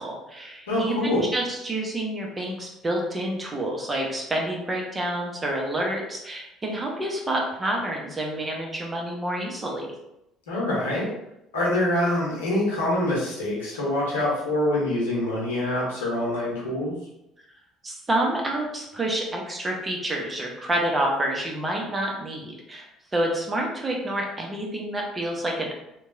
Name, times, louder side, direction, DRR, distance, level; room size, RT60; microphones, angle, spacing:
voice 1, 0.0-9.9 17.8-22.9 23.1-25.7, right 1 dB, 20° right, 0 dB, 0.7 m, -28 dB
voice 2, 0.7-1.3 10.5-11.1 11.5-16.9, left 1 dB, 75° left, -6 dB, 0.9 m, -25 dB
3.1 x 2.2 x 2.6 m, 0.84 s
figure-of-eight pair, 55°, 0 cm